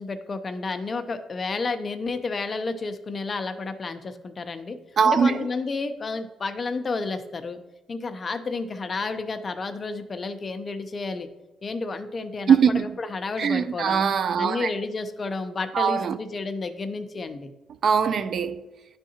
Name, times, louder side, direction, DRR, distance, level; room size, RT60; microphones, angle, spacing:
voice 1, 0.0-4.8 5.0-7.6 7.9-11.3 11.6-14.0 14.4-17.5, left 3 dB, 40° left, 0.5 m, -31 dB
voice 2, 5.0-5.4 12.5-13.0 13.4-14.7 15.7-16.2 17.8-18.6, right 7 dB, 55° right, 0.3 m, -21 dB
10.5 x 3.6 x 2.8 m
cardioid pair, 90°, 0 cm